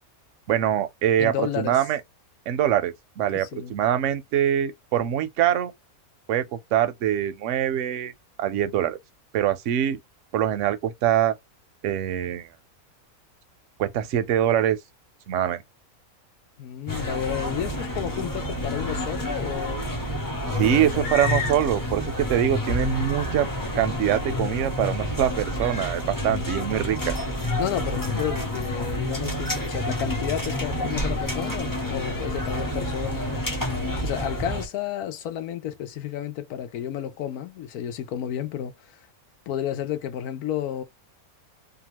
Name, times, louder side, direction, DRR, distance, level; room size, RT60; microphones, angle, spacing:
voice 1, 0.5-2.0 2.5-5.7 6.3-8.1 8.4-9.0 9.3-10.0 10.3-11.3 11.8-12.5 13.8-14.8 15.3-15.6 20.5-23.5 23.7-27.1, right 10 dB, 65° right, 0.8 m, -24 dB
voice 2, 1.2-1.8 3.3-3.7 16.6-19.9 20.4-21.1 27.6-33.5 34.0-39.0 39.5-40.8, left 10 dB, 85° left, 1.1 m, -31 dB
sound 1, 16.9-34.7, left 1 dB, 20° left, 0.6 m, -29 dB
2.8 x 2.3 x 2.9 m
omnidirectional pair, 1.5 m